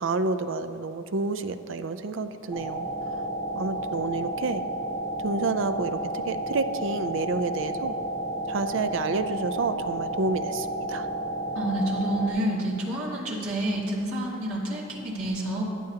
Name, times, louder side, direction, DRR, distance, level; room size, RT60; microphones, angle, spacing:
voice 1, 0.0-2.9 3.1-3.2 3.5-4.6 5.2-8.0 8.5-11.1, right 3 dB, 65° right, 11 dB, 0.5 m, -29 dB
sound 1, 2.5-12.3, right 1 dB, 5° left, 1.8 m, -32 dB
voice 2, 11.5-15.6, right 1 dB, 85° right, -5 dB, 2.3 m, -28 dB
15.5 x 10.5 x 2.8 m, 2.6 s
head